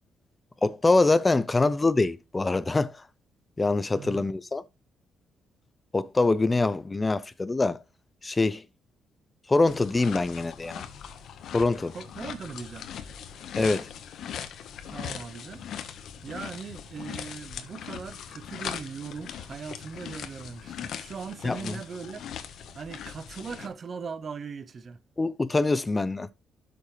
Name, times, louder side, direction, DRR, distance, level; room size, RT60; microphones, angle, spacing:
voice 1, 0.6-3.0 3.6-4.6 5.9-7.8 8.2-8.6 9.5-10.9 11.5-11.9 13.6-13.9 21.4-21.7 25.2-26.3, left 3 dB, 20° left, 0.6 m, -24 dB
voice 2, 3.9-4.3 11.9-12.9 14.9-15.6 16.2-22.2 22.5-25.0, right 5 dB, 45° right, 0.8 m, -39 dB
sound 1, 9.7-23.7, left 8 dB, 75° left, 1.3 m, -40 dB
12.5 x 6.8 x 3.3 m
cardioid pair, 90°, 0 cm